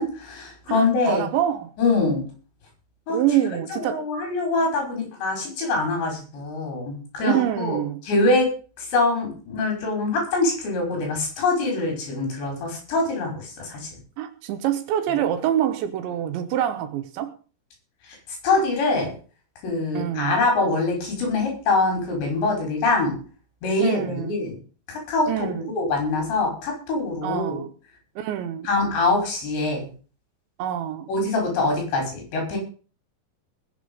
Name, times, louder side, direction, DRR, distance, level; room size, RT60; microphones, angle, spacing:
voice 1, 0.0-1.2 1.8-2.2 3.1-3.2 3.7-7.8 8.1-8.5 8.8-13.9 18.1-18.2 18.4-19.1 19.6-23.2 23.6-24.6 24.9-27.6 28.7-29.9 31.1-32.6, left 3 dB, 65° left, 7.6 m, -24 dB
voice 2, 0.7-1.7 3.1-4.1 7.2-8.0 14.2-17.3 19.9-20.4 23.8-24.4 25.3-25.7 27.2-27.7 28.2-28.7 30.6-31.1, right 11 dB, 75° right, 3.3 m, -26 dB
20.5 x 7.5 x 5.6 m
omnidirectional pair, 5.6 m